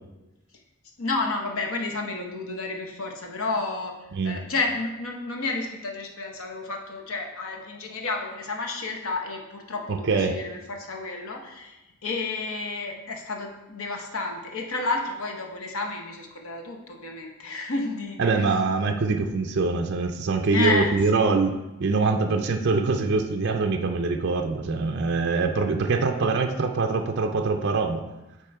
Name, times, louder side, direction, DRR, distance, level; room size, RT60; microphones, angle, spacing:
voice 1, 1.0-3.9 4.2-18.5 20.5-21.3, left 3 dB, 70° left, 2 dB, 0.9 m, -31 dB
voice 2, 9.9-10.3 18.2-21.5 21.8-28.0, right 4 dB, 50° right, 4 dB, 0.5 m, -24 dB
8.4 x 3.0 x 4.6 m, 1.0 s
head